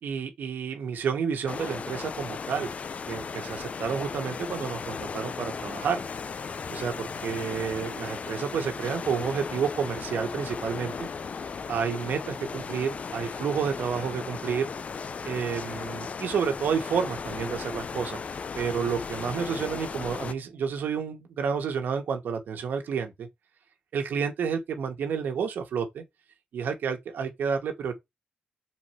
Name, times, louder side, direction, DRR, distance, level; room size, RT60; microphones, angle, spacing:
voice 1, 0.0-2.7 3.1-6.0 6.7-11.1 11.7-14.7 15.2-18.2 18.5-23.3 23.9-26.0 26.5-27.9, right 6 dB, 85° right, 1.6 m, -30 dB
sound 1, 1.5-20.3, left 5 dB, 45° left, 0.5 m, -36 dB
6.0 x 4.3 x 4.5 m
wide cardioid pair, 125°, 3 cm